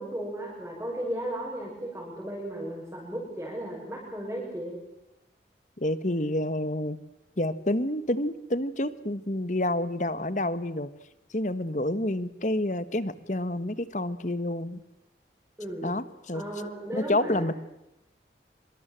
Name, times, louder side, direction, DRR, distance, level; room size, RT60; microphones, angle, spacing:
voice 1, 0.0-4.8 15.6-15.9 16.3-17.5, right 1 dB, 10° right, -5 dB, 6.6 m, -35 dB
voice 2, 5.8-7.0 7.4-10.9 11.3-14.8 15.8-16.4 16.9-17.5, left 1 dB, 45° left, 14 dB, 1.5 m, -28 dB
25.5 x 25.0 x 7.7 m, 0.87 s
head